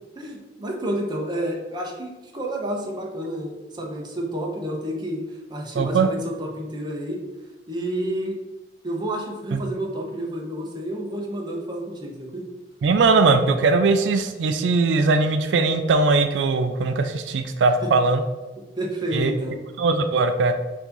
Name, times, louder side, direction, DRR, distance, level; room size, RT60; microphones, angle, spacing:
voice 1, 0.2-7.2 7.7-8.4 8.8-12.4 17.8-17.9 18.6-19.6, right 1 dB, 25° right, 0 dB, 0.7 m, -30 dB
voice 2, 5.8-6.1 9.5-9.6 12.8-18.2 19.1-19.3 19.8-20.5, right 3 dB, 85° right, 8 dB, 0.3 m, -20 dB
4.6 x 2.8 x 3.9 m, 1.2 s
head